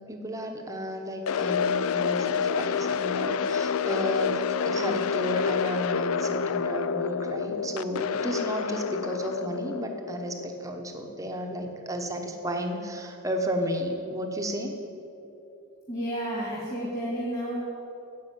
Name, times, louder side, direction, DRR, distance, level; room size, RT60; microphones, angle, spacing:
voice 1, 0.0-14.7, equal, 15° right, 3 dB, 1.0 m, -33 dB
sound 1, 1.3-11.3, left 6 dB, 75° left, 0.4 m, -28 dB
voice 2, 15.9-17.6, equal, 30° left, -6 dB, 2.6 m, -31 dB
9.9 x 8.1 x 8.4 m, 2.9 s
head